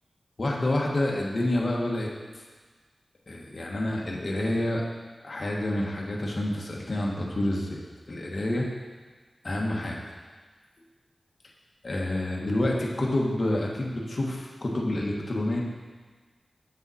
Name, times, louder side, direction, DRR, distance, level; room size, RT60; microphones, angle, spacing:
voice 1, 0.4-2.1 3.3-4.8 5.2-7.8 8.1-8.7 9.4-10.0 11.8-15.6, left 1 dB, 45° left, -2 dB, 1.2 m, -28 dB
7.4 x 6.9 x 4.1 m, 1.4 s
wide cardioid pair, 80°, 0 cm